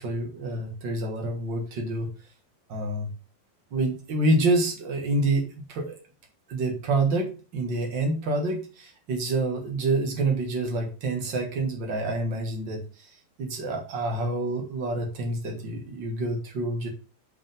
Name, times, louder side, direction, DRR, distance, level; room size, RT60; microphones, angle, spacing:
voice 1, 0.0-2.1 2.7-3.1 3.7-6.0 6.5-12.8 13.4-16.9, right 2 dB, 45° right, 2 dB, 1.9 m, -27 dB
9.4 x 5.3 x 3.5 m, 0.35 s
omnidirectional pair, 3.7 m